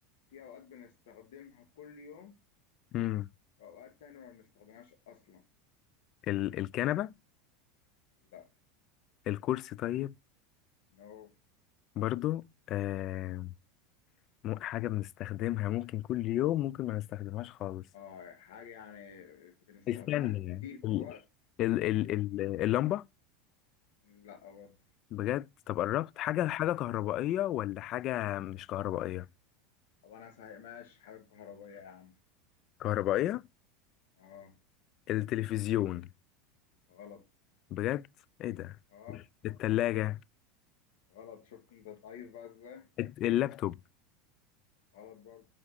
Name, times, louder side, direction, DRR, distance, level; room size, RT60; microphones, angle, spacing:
voice 1, 0.3-2.4 3.6-5.4 8.3-8.5 10.9-11.3 17.9-20.4 20.6-21.2 22.1-22.2 24.0-24.7 30.0-32.2 34.2-34.5 36.9-37.2 38.9-39.2 41.1-42.9 44.9-45.4, left 8 dB, 80° left, 1.6 m, -50 dB
voice 2, 2.9-3.3 6.3-7.1 9.3-10.1 12.0-13.5 14.4-17.8 19.9-21.1 21.6-23.0 25.1-29.3 32.8-33.4 35.1-36.1 37.7-38.1 38.4-38.8 39.4-40.2 43.0-43.8, left 14 dB, 45° left, 0.3 m, -32 dB
5.7 x 4.9 x 6.5 m
supercardioid pair, 130°, 0 cm